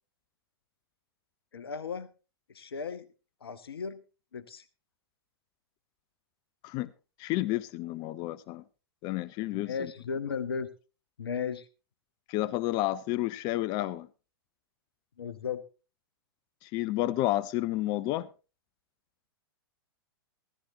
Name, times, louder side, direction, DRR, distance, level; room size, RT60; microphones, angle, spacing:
voice 1, 1.5-2.1 2.5-3.1 3.4-4.0 4.3-4.6 9.5-10.7 11.2-11.7 15.2-15.6, left 6 dB, 70° left, 0.9 m, -35 dB
voice 2, 7.2-8.6 9.0-9.9 12.3-14.1 16.6-18.3, left 16 dB, 30° left, 0.5 m, -30 dB
16.0 x 13.5 x 2.7 m
figure-of-eight pair, 105°, 13 cm